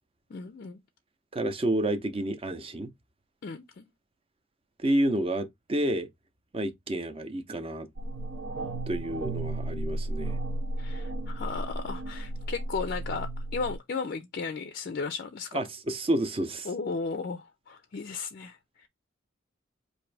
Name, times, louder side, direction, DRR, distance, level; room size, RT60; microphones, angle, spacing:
voice 1, 0.3-0.8 3.4-3.9 10.8-15.6 16.7-18.9, left 4 dB, 45° left, 0.4 m, -35 dB
voice 2, 1.3-2.9 4.8-6.1 6.5-7.9 8.9-10.4 15.5-16.7, right 1 dB, 25° right, 0.6 m, -29 dB
sound 1, 8.0-13.8, right 1 dB, 75° right, 0.6 m, -34 dB
4.8 x 2.6 x 3.2 m
head